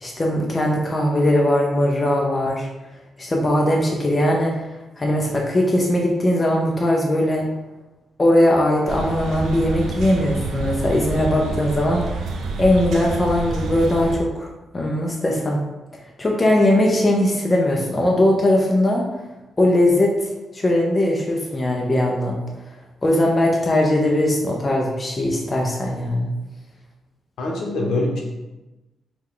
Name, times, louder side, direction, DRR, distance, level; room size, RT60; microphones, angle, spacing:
voice 1, 0.0-2.7 3.2-4.7 5.0-7.5 8.2-12.3 12.6-14.5 14.7-15.6 16.2-19.0 19.6-20.1 20.5-22.4 23.0-26.3, left 1 dB, 20° left, -1 dB, 0.5 m, -19 dB
sound 1, 8.9-14.2, right 3 dB, 80° right, 0.4 m, -28 dB
voice 2, 27.4-28.2, left 2 dB, 75° left, -1 dB, 0.9 m, -23 dB
4.8 x 2.2 x 3.7 m, 1.1 s
wide cardioid pair, 165°, 0 cm